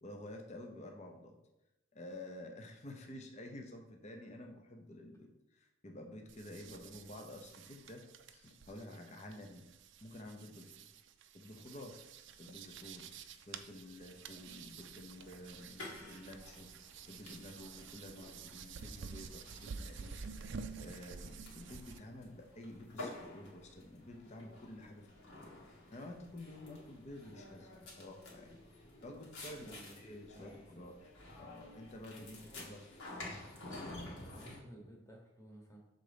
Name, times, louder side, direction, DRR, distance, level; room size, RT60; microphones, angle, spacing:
voice 1, 0.0-1.4 1.9-9.7 10.0-10.9 11.3-12.0 12.4-13.1 13.5-16.7 17.1-20.3 20.8-28.6 29.0-31.0 31.4-33.3, left 1 dB, 30° left, 3 dB, 0.7 m, -50 dB
sound 1, 6.3-22.0, right 5 dB, 55° right, 0.4 m, -50 dB
sound 2, 15.2-34.6, left 2 dB, 85° left, 1.8 m, -52 dB
voice 2, 29.6-30.8 34.1-35.8, right 1 dB, 15° left, -1 dB, 1.1 m, -55 dB
6.7 x 3.9 x 5.1 m, 0.89 s
head